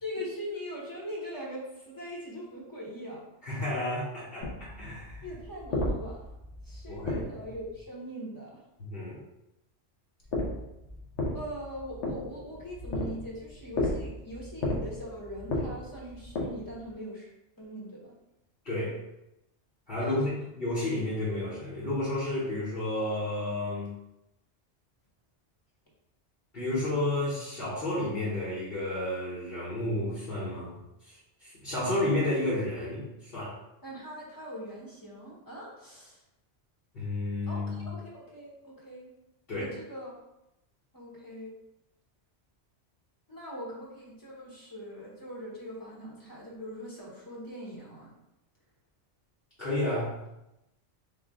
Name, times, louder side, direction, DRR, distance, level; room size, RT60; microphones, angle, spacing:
voice 1, 0.0-3.2 5.2-6.3 6.6-8.6 11.3-17.3 17.6-18.1 20.0-20.3 33.8-36.2 37.5-39.1 39.5-40.2 40.9-41.5 43.3-48.1, equal, 20° left, -4 dB, 1.0 m, -41 dB
voice 2, 3.4-5.2 6.9-7.3 8.8-9.2 18.6-19.0 19.9-23.9 26.5-30.7 31.0-33.5 36.9-37.9 39.5-39.7 49.6-50.1, left 1 dB, 55° left, -10 dB, 1.2 m, -31 dB
sound 1, 4.4-7.8 10.2-16.9, left 2 dB, 90° left, 1.1 m, -34 dB
3.8 x 2.3 x 3.5 m, 0.89 s
omnidirectional pair, 1.2 m